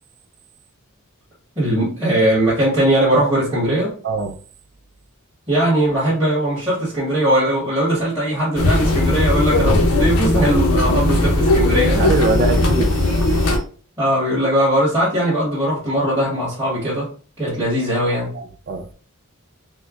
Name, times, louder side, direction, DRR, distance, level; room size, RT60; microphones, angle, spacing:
voice 1, 1.5-3.9 5.5-12.1 14.0-17.1 17.4-18.3, right 1 dB, 15° right, -11 dB, 1.4 m, -19 dB
sound 1, 8.6-13.6, left 1 dB, 75° left, 0.7 m, -17 dB
voice 2, 12.0-13.6 18.3-18.9, right 4 dB, 45° right, 7 dB, 0.4 m, -24 dB
4.2 x 2.2 x 2.4 m, 0.41 s
head